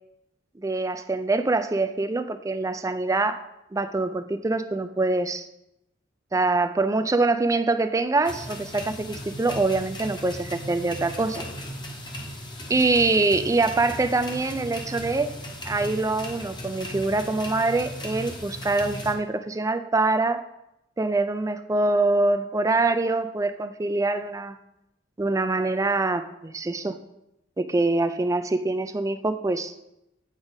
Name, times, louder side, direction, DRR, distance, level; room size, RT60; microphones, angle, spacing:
voice 1, 0.6-3.4 3.7-5.5 6.3-11.4 12.7-15.3 15.6-20.4 21.0-24.6 25.2-27.0 27.6-29.7, right 3 dB, 15° right, 10 dB, 0.4 m, -24 dB
sound 1, 8.2-19.1, equal, 25° left, 0.9 m, -37 dB
8.8 x 4.9 x 4.0 m, 0.86 s
head